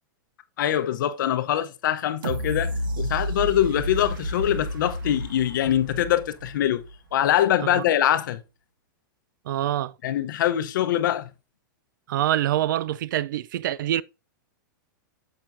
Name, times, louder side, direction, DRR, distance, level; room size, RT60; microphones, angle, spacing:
voice 1, 0.6-6.8 7.1-8.4 10.0-11.3, left 11 dB, 70° left, 0.8 m, -23 dB
sound 1, 2.2-7.1 7.6-7.7, right 1 dB, 90° right, 1.2 m, -31 dB
voice 2, 9.5-9.9 12.1-14.0, right 12 dB, 70° right, 0.4 m, -25 dB
8.7 x 7.5 x 2.6 m
supercardioid pair, 155°, 11 cm